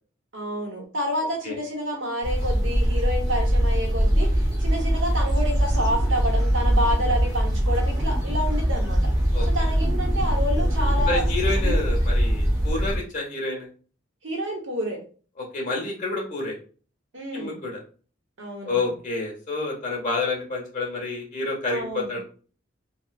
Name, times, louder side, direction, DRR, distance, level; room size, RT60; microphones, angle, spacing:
voice 1, 0.3-9.0 9.5-11.2 11.6-11.8 14.2-15.0 17.1-17.6 18.4-18.9 21.7-22.2, equal, 90° right, -1 dB, 1.2 m, -29 dB
sound 1, 2.2-13.0, equal, 20° right, 1.0 m, -22 dB
voice 2, 11.1-13.7 15.5-16.5 17.3-17.7 18.6-22.2, left 3 dB, 40° left, -2 dB, 1.3 m, -28 dB
3.5 x 2.3 x 2.5 m, 0.39 s
head